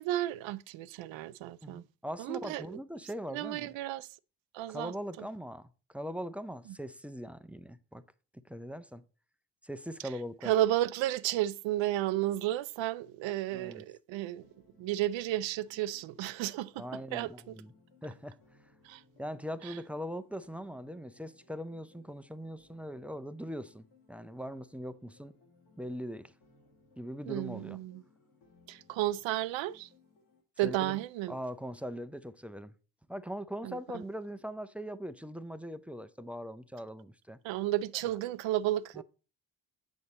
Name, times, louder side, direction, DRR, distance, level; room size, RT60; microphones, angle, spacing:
voice 1, 0.0-1.8 2.2-2.8 3.3-4.1 4.5-5.3 10.4-14.5 14.8-16.8 17.1-17.5 18.8-19.0 19.6-19.8 27.3-28.0 28.7-29.9 30.6-31.4 33.6-34.0 37.4-39.0, right 14 dB, 70° right, 0.5 m, -33 dB
voice 2, 1.6-3.7 4.7-8.0 8.3-9.0 9.6-10.5 13.5-13.8 16.8-17.7 18.0-18.4 19.2-25.4 25.8-26.3 27.0-27.8 30.6-31.0 31.3-32.7 33.1-37.4 38.9-39.0, equal, 5° right, 0.4 m, -41 dB
sound 1, 14.4-30.4, left 3 dB, 85° left, 1.8 m, -65 dB
7.0 x 5.3 x 4.1 m
supercardioid pair, 55°, 49 cm